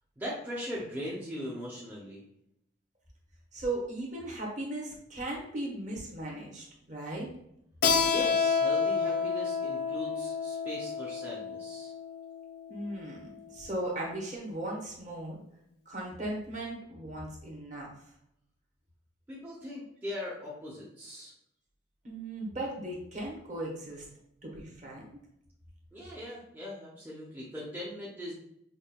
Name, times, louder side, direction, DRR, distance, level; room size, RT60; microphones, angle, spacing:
voice 1, 0.2-2.2 8.0-11.9 19.3-21.3 25.9-28.3, left 1 dB, 10° right, -6 dB, 0.5 m, -40 dB
voice 2, 3.5-7.3 12.7-15.4 15.9-17.9 22.0-24.0 24.4-25.1, right 1 dB, 40° right, -2 dB, 0.9 m, -37 dB
Keyboard (musical), 7.8-13.1, left 5 dB, 50° left, 0.4 m, -29 dB
5.3 x 2.2 x 2.2 m, 0.76 s
head